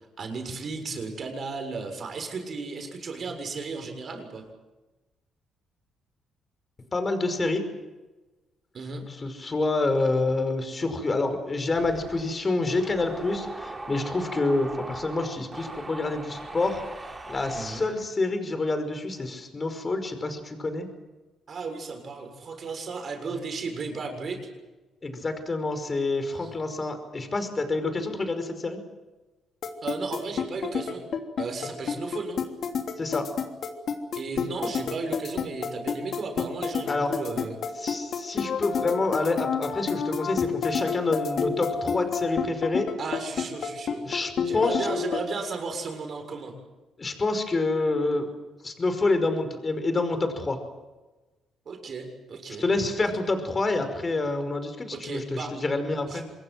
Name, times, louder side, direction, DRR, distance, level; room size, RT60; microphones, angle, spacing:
voice 1, 0.2-4.5 8.7-9.1 17.5-17.8 21.5-24.4 26.3-26.6 29.8-31.0 31.4-32.4 34.2-37.6 43.0-44.1 44.4-46.6 51.7-52.6 54.9-55.6 56.1-56.2, right 4 dB, 50° right, 5 dB, 7.0 m, -34 dB
voice 2, 6.9-7.7 9.2-16.8 17.3-20.9 25.0-28.8 33.0-33.3 36.9-37.1 37.8-42.9 44.0-44.9 47.0-48.3 48.6-50.6 52.6-56.2, left 2 dB, 30° left, 8 dB, 5.4 m, -27 dB
sound 1, 11.7-18.0, right 2 dB, 20° right, 4.2 m, -40 dB
sound 2, 29.6-45.2, left 6 dB, 60° left, 3.3 m, -28 dB
26.5 x 21.5 x 7.9 m, 1.1 s
cardioid pair, 90°, 0 cm